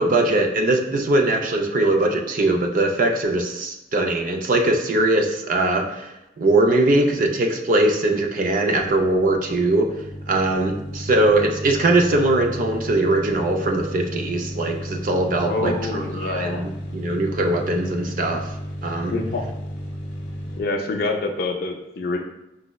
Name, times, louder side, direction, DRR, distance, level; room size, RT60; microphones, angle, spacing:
voice 1, 0.0-6.1 6.4-9.9 10.3-18.4 18.8-19.1, right 2 dB, 45° right, 3 dB, 0.4 m, -21 dB
sound 1, 8.8-20.6, equal, 85° left, 0.8 m, -34 dB
voice 2, 15.4-16.7 19.1-19.4 20.6-22.2, left 2 dB, 55° left, 4 dB, 0.4 m, -26 dB
5.0 x 2.0 x 2.2 m, 0.90 s
head